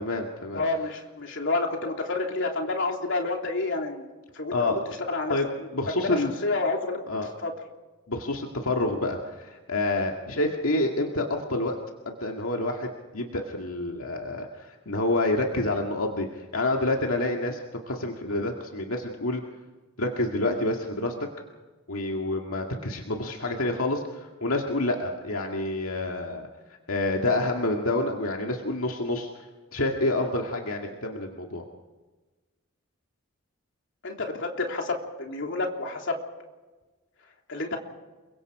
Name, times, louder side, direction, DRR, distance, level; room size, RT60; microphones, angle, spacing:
voice 1, 0.0-0.6 4.5-4.8 5.3-5.5 5.7-6.3 7.1-7.3 8.1-11.8 12.1-17.6 17.9-19.4 20.0-21.3 21.9-26.4 26.9-29.4 29.7-31.6, left 2 dB, 80° left, 1 dB, 2.1 m, -28 dB
voice 2, 0.5-4.0 4.3-4.8 5.1-5.3 6.0-7.0 7.4-7.5 34.0-36.2 37.5-37.8, left 3 dB, 60° left, 2 dB, 3.3 m, -29 dB
29.0 x 23.5 x 4.9 m, 1.3 s
head